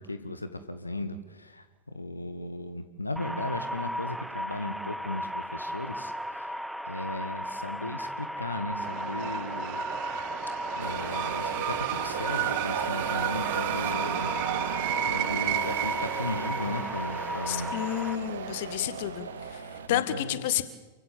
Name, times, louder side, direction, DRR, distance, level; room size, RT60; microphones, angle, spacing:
voice 1, 0.0-6.5 6.9-9.8 10.1-10.2 10.8-14.4 15.1-17.8 18.8-19.1 19.9-20.5, left 2 dB, 80° left, 10 dB, 1.5 m, -36 dB
sound 1, 3.2-18.2, equal, ahead, 0.8 m, -35 dB
sound 2, 8.8-18.8, right 19 dB, 45° right, 0.8 m, -34 dB
sound 3, 10.8-19.9, right 6 dB, 65° right, 2.1 m, -36 dB
voice 2, 17.5-19.3 19.9-20.6, left 13 dB, 50° left, 12 dB, 1.8 m, -30 dB
28.5 x 16.0 x 9.0 m, 1.2 s
figure-of-eight pair, 90°, 0 cm